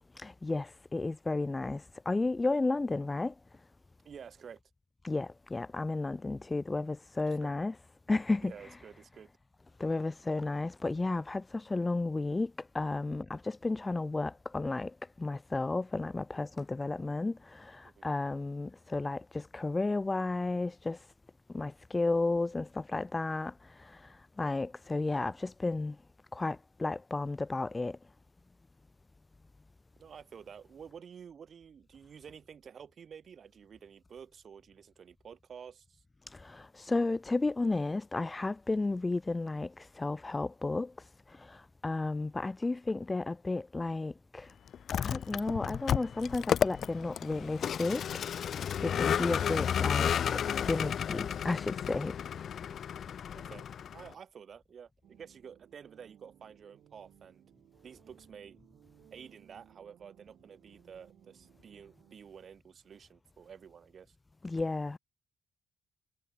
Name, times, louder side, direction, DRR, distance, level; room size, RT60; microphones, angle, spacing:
voice 1, 0.2-3.3 5.0-7.7 8.1-8.5 9.8-14.9 15.2-21.0 21.5-23.5 24.4-26.0 26.3-28.0 36.3-40.9 41.4-41.6 41.8-44.5 45.0-48.1 48.8-52.2 64.4-65.0, left 3 dB, 20° left, 1.1 m, -33 dB
voice 2, 4.0-4.6 7.4-7.5 8.4-9.3 17.8-18.1 30.0-36.0 53.3-53.7 53.9-57.4 57.8-58.6 59.1-64.1, right 7 dB, 50° right, 6.5 m, -50 dB
Vehicle, 44.7-54.1, left 8 dB, 60° left, 0.6 m, -32 dB
sound 1, 55.0-62.2, right 11 dB, 70° right, 5.9 m, -62 dB
cardioid pair, 90°, 0 cm